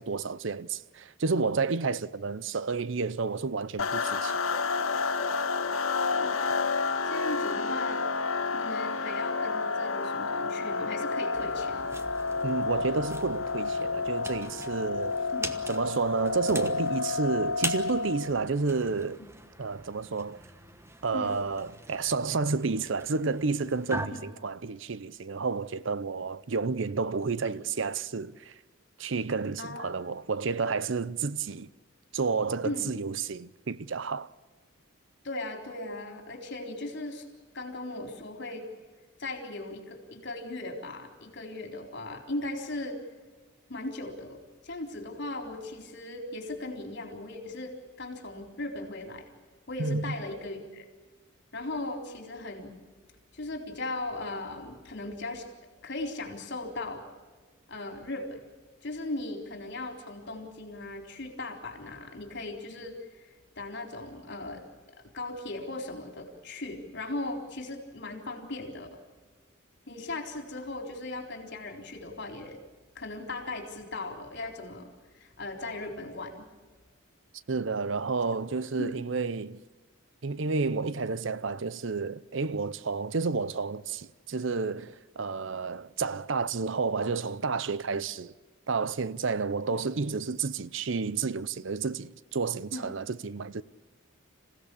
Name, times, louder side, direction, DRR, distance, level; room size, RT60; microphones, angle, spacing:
voice 1, 0.0-4.6 12.4-15.2 15.7-19.2 19.6-20.4 21.0-28.6 29.0-31.7 32.1-34.3 49.8-50.2 77.5-79.6 80.2-88.3 88.7-93.6, right 4 dB, 65° right, 0.6 m, -30 dB
sound 1, 3.8-18.3, left 4 dB, 85° left, 1.5 m, -30 dB
voice 2, 6.2-6.5 7.0-8.0 8.5-11.8 15.3-15.5 19.2-19.3 21.1-21.4 24.1-24.2 29.6-29.9 32.6-32.9 35.2-37.3 37.5-38.7 39.2-43.0 43.7-49.3 49.7-50.9 51.5-52.8 53.3-55.5 55.8-57.0 57.7-58.4 58.8-63.3 63.6-64.7 65.1-69.0 69.9-72.6 73.0-76.4 78.8-78.9 92.7-92.9, left 2 dB, 55° left, 4.1 m, -38 dB
sound 2, 11.3-24.1, right 2 dB, 15° right, 1.2 m, -42 dB
27.0 x 16.5 x 8.5 m
head